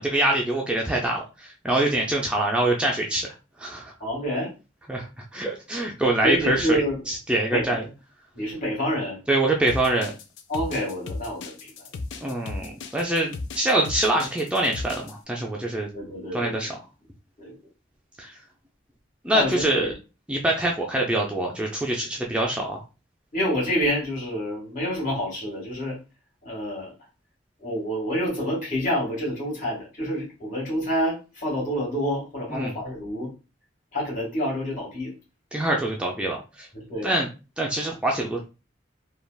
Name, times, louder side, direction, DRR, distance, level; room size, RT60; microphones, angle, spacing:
voice 1, 0.0-3.9 4.9-6.8 7.1-7.8 9.3-10.1 12.2-15.9 16.3-16.8 18.2-18.4 19.2-19.9 20.3-22.8 32.5-32.7 35.5-36.7 37.0-37.3 37.6-38.4, right 1 dB, 5° right, -1 dB, 0.3 m, -25 dB
voice 2, 4.0-4.5 6.2-7.0 7.5-7.7 8.3-9.2 10.5-11.7 15.9-16.6 17.4-17.6 19.3-19.9 23.3-26.0 26.4-26.9 27.6-33.3 33.9-35.1 36.7-37.1, equal, 45° left, -4 dB, 1.6 m, -28 dB
sound 1, 9.7-15.1, left 3 dB, 85° left, 0.4 m, -35 dB
3.2 x 2.3 x 2.2 m, 0.31 s
head